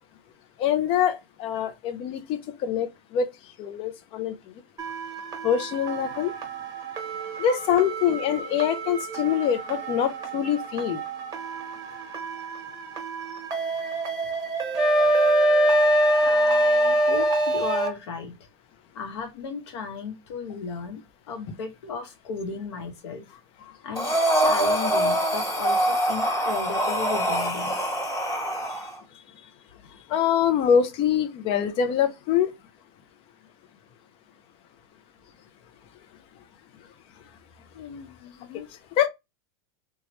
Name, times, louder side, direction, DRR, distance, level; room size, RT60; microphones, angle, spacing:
voice 1, 0.6-3.3 3.6-4.4 5.4-6.3 7.4-11.0 30.1-32.5 39.0-39.1, left 8 dB, 40° left, 0.5 m, -24 dB
sound 1, 4.8-17.9, right 6 dB, 25° right, 1.1 m, -34 dB
Wind instrument woodwind instrument, 14.8-17.9, equal, 5° right, 0.6 m, -20 dB
voice 2, 16.2-18.3 18.9-21.0 21.3-23.2 23.8-27.9 37.2-37.3 37.7-38.7, left 5 dB, 80° left, 1.0 m, -35 dB
Breathing, 24.0-28.9, right 1 dB, 25° left, 1.4 m, -24 dB
3.1 x 2.3 x 2.9 m
supercardioid pair, 130°, 14 cm